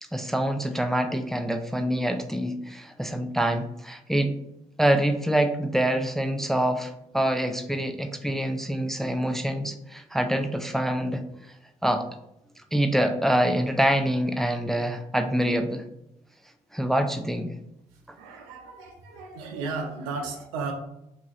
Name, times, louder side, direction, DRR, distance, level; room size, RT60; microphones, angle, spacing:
voice 1, 0.1-4.4 4.8-11.2 11.8-12.1 12.7-15.8 16.7-17.5, right 1 dB, ahead, 7 dB, 0.3 m, -25 dB
voice 2, 18.2-20.7, right 4 dB, 85° right, 3 dB, 0.4 m, -34 dB
2.7 x 2.3 x 2.9 m, 0.81 s
hypercardioid pair, 45°, 18 cm